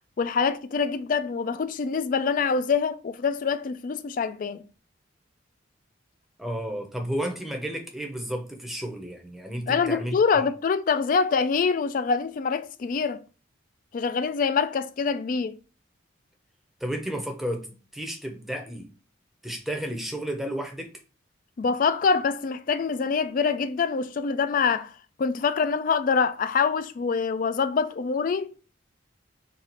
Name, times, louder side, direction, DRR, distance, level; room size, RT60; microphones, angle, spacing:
voice 1, 0.2-4.6 9.7-13.2 13.9-15.6 21.6-28.5, left 5 dB, 45° left, 0.3 m, -25 dB
voice 2, 6.4-10.5 16.8-18.9 19.4-21.0, equal, ahead, 0.7 m, -32 dB
4.1 x 2.4 x 4.3 m
head